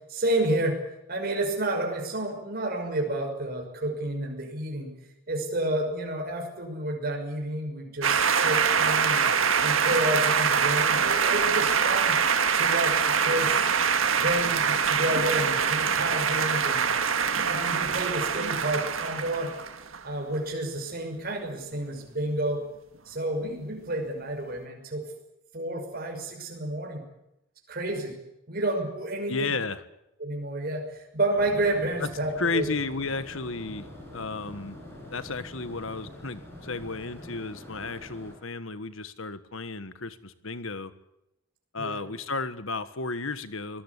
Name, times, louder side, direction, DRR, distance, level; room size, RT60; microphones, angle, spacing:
voice 1, 0.1-0.8 1.1-4.9 5.3-9.3 9.6-12.2 12.5-13.7 14.2-16.9 17.4-19.5 20.0-22.6 23.1-25.1 25.5-27.0 27.7-28.1 28.5-29.5 30.2-32.7 41.8-42.0, right 1 dB, 45° right, 2 dB, 5.9 m, -30 dB
sound 1, 8.0-20.0, right 6 dB, 75° right, 1.9 m, -24 dB
voice 2, 29.3-29.8 32.0-32.1 32.4-34.8 35.1-40.9 41.7-43.8, left 3 dB, 75° left, 12 dB, 1.5 m, -33 dB
sound 2, 31.3-38.3, left 1 dB, 10° left, 7.5 m, -45 dB
24.5 x 18.0 x 8.4 m, 0.88 s
head